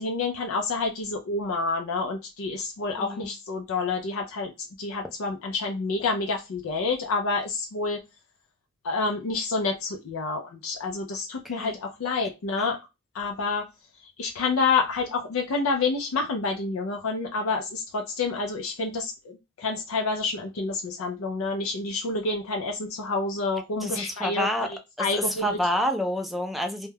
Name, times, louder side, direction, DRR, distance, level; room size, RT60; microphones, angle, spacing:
voice 1, 0.0-4.5 4.8-8.0 8.8-12.8 13.1-13.7 14.2-24.7 25.0-25.6, left 3 dB, 90° left, 2 dB, 0.4 m, -28 dB
voice 2, 3.0-3.3 11.4-11.8 23.8-24.7 25.0-26.9, equal, ahead, 4 dB, 0.3 m, -28 dB
2.2 x 2.1 x 3.2 m, 0.25 s
head